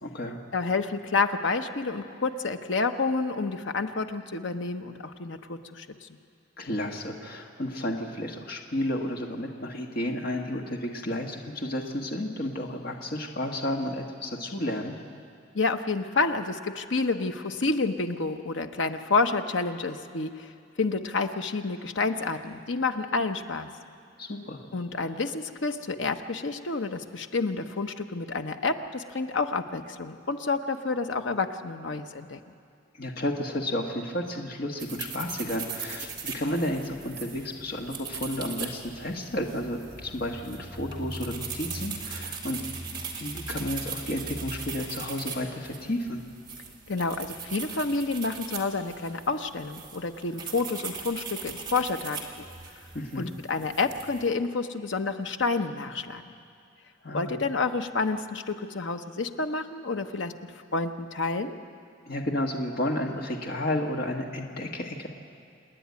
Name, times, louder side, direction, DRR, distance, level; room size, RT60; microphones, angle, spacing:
voice 1, 0.0-0.4 6.6-14.9 24.2-24.6 32.9-42.6 43.1-46.2 52.9-53.3 57.0-57.4 62.1-65.1, left 1 dB, 50° left, 1 dB, 1.5 m, -32 dB
voice 2, 0.5-6.1 15.5-20.5 20.8-23.7 24.7-32.4 46.9-52.5 53.2-56.2 57.1-60.3 60.7-61.6, left 3 dB, 75° left, 7 dB, 1.0 m, -29 dB
sound 1, 34.8-54.3, right 5 dB, 25° right, 2.2 m, -39 dB
27.0 x 10.0 x 9.6 m, 2.4 s
head